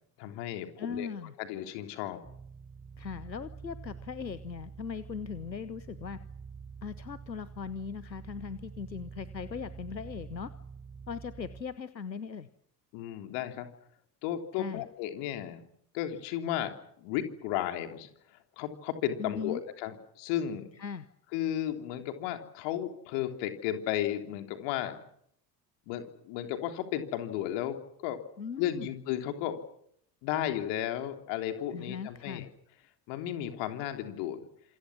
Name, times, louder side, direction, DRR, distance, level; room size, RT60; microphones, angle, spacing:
voice 1, 0.2-1.1 1.4-2.2 12.9-13.7 14.2-15.6 15.9-18.1 18.6-20.7 21.3-25.0 25.9-28.2 28.6-29.6 30.2-32.5 33.1-34.4, left 11 dB, 60° left, 6 dB, 3.5 m, -34 dB
voice 2, 0.8-1.3 3.0-6.2 6.8-10.5 11.1-12.5 14.5-14.8 19.2-19.6 20.8-21.1 28.4-28.9 31.7-32.5, left 6 dB, 90° left, 15 dB, 1.0 m, -39 dB
sound 1, 2.2-11.6, right 5 dB, 20° right, 5.8 m, -47 dB
27.0 x 27.0 x 6.2 m, 0.70 s
figure-of-eight pair, 60°, 49 cm